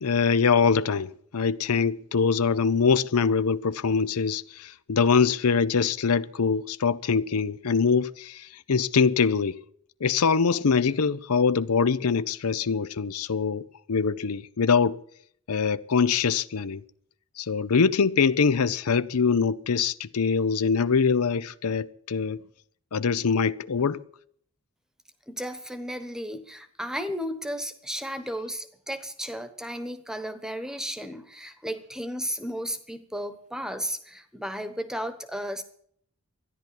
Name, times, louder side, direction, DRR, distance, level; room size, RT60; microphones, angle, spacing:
voice 1, 0.0-9.6 10.0-15.0 15.5-16.8 17.4-22.4 22.9-24.0, left 5 dB, 85° left, 0.6 m, -23 dB
voice 2, 25.3-35.6, equal, 5° right, 1.1 m, -34 dB
13.5 x 10.5 x 9.8 m
head